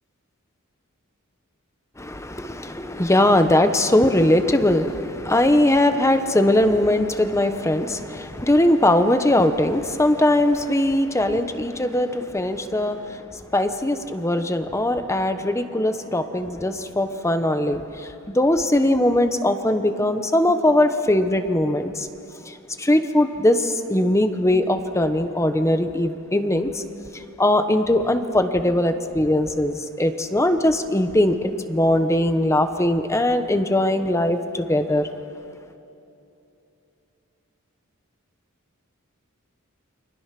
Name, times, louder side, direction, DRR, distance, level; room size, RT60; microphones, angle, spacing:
voice 1, 2.0-22.1 22.4-26.8 27.1-35.1, left 1 dB, 15° left, 8 dB, 1.1 m, -20 dB
29.5 x 24.0 x 6.0 m, 2.8 s
head